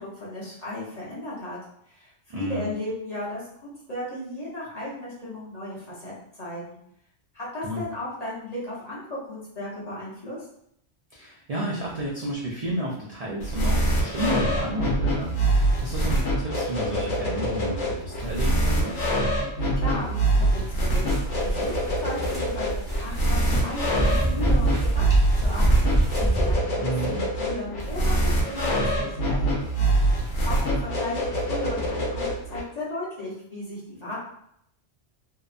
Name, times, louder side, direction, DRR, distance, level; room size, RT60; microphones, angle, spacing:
voice 1, 0.0-1.6 1.9-6.8 7.3-10.5 19.6-21.1 21.4-25.1 25.4-29.7 30.4-34.2, left 1 dB, 40° left, -7 dB, 0.8 m, -35 dB
voice 2, 2.3-2.7 7.6-7.8 11.1-19.0 26.8-27.2, right 1 dB, 65° right, -4 dB, 0.3 m, -31 dB
sound 1, 13.4-32.6, right 1 dB, 80° left, 1.0 m, -25 dB
sound 2, 21.0-26.6, right 1 dB, 5° right, 0.6 m, -25 dB
2.8 x 2.1 x 2.4 m, 0.72 s
omnidirectional pair, 1.2 m